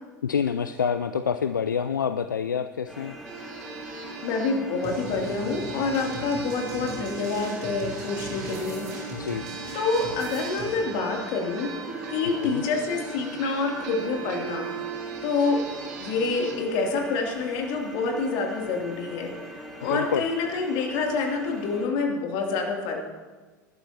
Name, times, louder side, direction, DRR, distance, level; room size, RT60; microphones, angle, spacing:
voice 1, 0.2-3.1 9.1-9.4 12.4-12.6 19.9-20.2, left 7 dB, 80° left, 11 dB, 0.4 m, -27 dB
sound 1, 2.9-21.9, equal, ahead, 4.4 m, -42 dB
sound 2, 3.2-16.6, right 6 dB, 60° right, 2.0 m, -39 dB
voice 2, 4.2-8.9 9.7-11.7 12.1-14.7 15.2-15.6 16.0-23.1, left 4 dB, 55° left, 1 dB, 2.9 m, -27 dB
sound 3, 4.8-10.7, right 1 dB, 35° right, 4.0 m, -40 dB
20.5 x 12.0 x 2.9 m, 1.4 s
figure-of-eight pair, 75°, 10 cm